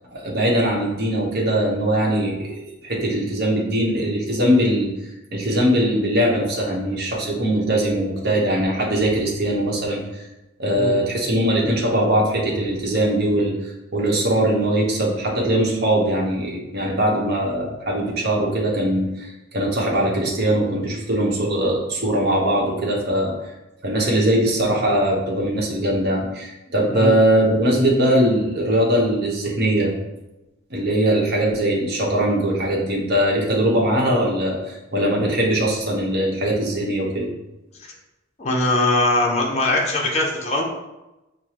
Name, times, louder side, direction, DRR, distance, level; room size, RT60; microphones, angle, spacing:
voice 1, 0.1-4.9 5.3-10.2 10.6-23.3 23.8-29.9 30.7-37.3, right 1 dB, 50° right, -2 dB, 1.0 m, -21 dB
voice 2, 38.4-40.6, left 2 dB, 35° left, -1 dB, 0.7 m, -21 dB
6.4 x 2.2 x 2.9 m, 0.99 s
head